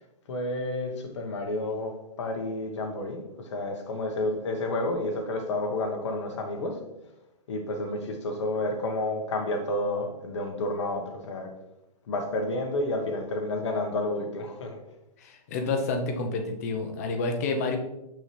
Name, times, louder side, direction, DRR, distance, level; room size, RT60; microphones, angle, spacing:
voice 1, 0.3-6.8 7.5-11.5 12.1-14.8, left 2 dB, 45° left, 3 dB, 1.3 m, -30 dB
voice 2, 15.2-17.8, left 3 dB, 25° left, 4 dB, 0.7 m, -29 dB
6.2 x 5.6 x 3.2 m, 0.91 s
hypercardioid pair, 170°, 20 cm